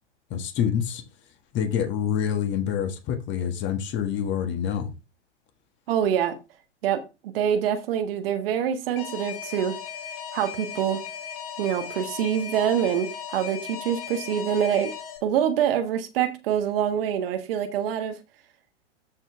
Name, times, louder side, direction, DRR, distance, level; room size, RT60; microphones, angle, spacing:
voice 1, 0.3-1.0 1.5-4.9, left 8 dB, 30° left, 1.6 m, -26 dB
voice 2, 5.9-6.3 6.8-9.7 10.3-11.0 11.6-14.9 15.2-18.2, right 9 dB, 55° right, 1.4 m, -25 dB
Alarm, 9.0-15.2, left 8 dB, 50° left, 2.2 m, -37 dB
13.0 x 4.5 x 3.5 m
figure-of-eight pair, 100°, 35 cm